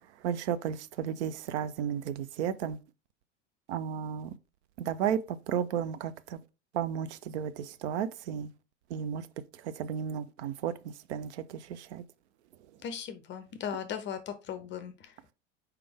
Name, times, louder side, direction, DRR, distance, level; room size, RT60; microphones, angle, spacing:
voice 1, 0.2-2.8 3.7-4.3 4.8-6.4 6.7-8.5 8.9-9.3 9.6-12.0, right 8 dB, 65° right, 0.5 m, -33 dB
voice 2, 12.8-15.2, left 8 dB, 30° left, 0.5 m, -38 dB
4.5 x 3.4 x 3.4 m
hypercardioid pair, 85°, 36 cm